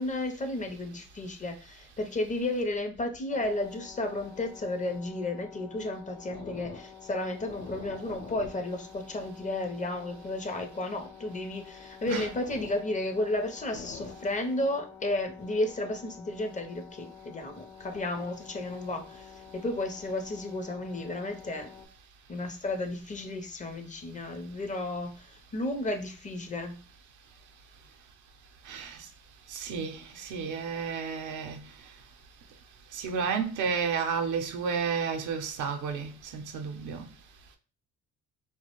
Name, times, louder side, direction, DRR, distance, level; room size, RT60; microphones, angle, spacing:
voice 1, 0.0-21.7 22.3-26.8, left 2 dB, 25° left, 0.5 m, -33 dB
sound 1, 3.3-21.9, left 6 dB, 90° left, 0.6 m, -48 dB
voice 2, 28.7-29.0 29.5-31.6 32.9-37.1, right 6 dB, 80° right, 0.5 m, -32 dB
2.4 x 2.1 x 2.8 m
cardioid pair, 90°, 30 cm